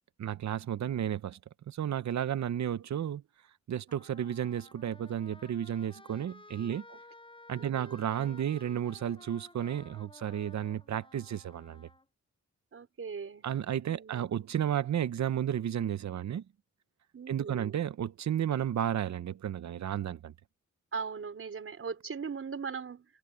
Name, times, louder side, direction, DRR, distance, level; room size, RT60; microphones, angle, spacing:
voice 1, 0.2-1.4 1.7-3.2 3.7-6.9 7.5-11.9 13.4-16.4 17.3-20.3, right 10 dB, 70° right, 0.8 m, -32 dB
Trumpet, 3.9-12.0, left 2 dB, 20° left, 6.1 m, -55 dB
voice 2, 7.5-8.1 12.7-13.5 13.9-14.4 17.1-17.8 20.9-23.1, right 5 dB, 50° right, 4.8 m, -39 dB
wide cardioid pair, 130°, 29 cm